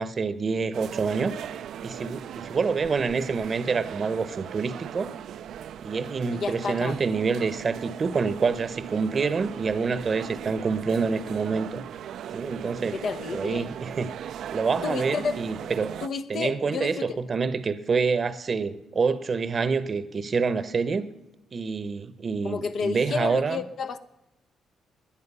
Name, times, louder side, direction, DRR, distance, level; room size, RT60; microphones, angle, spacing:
voice 1, 0.0-1.3 1.8-5.1 5.8-11.8 12.3-13.0 13.3-14.1 14.5-15.9 16.3-21.1 21.5-23.6, right 5 dB, 40° right, 0.8 m, -27 dB
sound 1, 0.7-16.1, right 10 dB, 70° right, 0.4 m, -39 dB
voice 2, 6.3-7.0 12.9-13.7 14.8-15.7 16.0-17.2 22.4-24.0, left 5 dB, 60° left, 0.8 m, -31 dB
18.0 x 10.5 x 5.5 m
cardioid pair, 90°, 0 cm